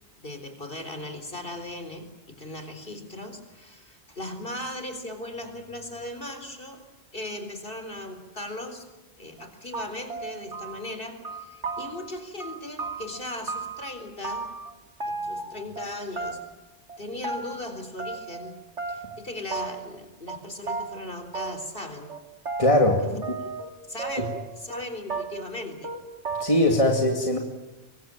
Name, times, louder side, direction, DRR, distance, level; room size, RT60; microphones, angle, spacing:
voice 1, 0.2-6.8 7.1-8.9 9.2-14.5 15.1-16.4 17.0-18.5 18.9-22.1 23.9-24.3 24.6-25.9, left 1 dB, 50° left, 8 dB, 4.1 m, -38 dB
sound 1, 9.4-9.5 9.7-11.0 11.2-12.1 12.4-13.9 14.2-14.7 15.0-15.9 16.2-16.6 16.9-17.6 18.0-18.5 18.8-19.2 19.5-20.0 20.3-20.4 20.7-20.9 21.3-21.8 22.1-23.7 24.0-24.8 25.1-25.6 25.8-26.0 26.2-26.7, right 4 dB, 80° right, 3.1 m, -34 dB
voice 2, 22.6-23.2 24.2-24.3 26.4-27.4, left 1 dB, 30° left, 2 dB, 2.6 m, -21 dB
25.0 x 23.0 x 9.0 m, 1.1 s
omnidirectional pair, 1.2 m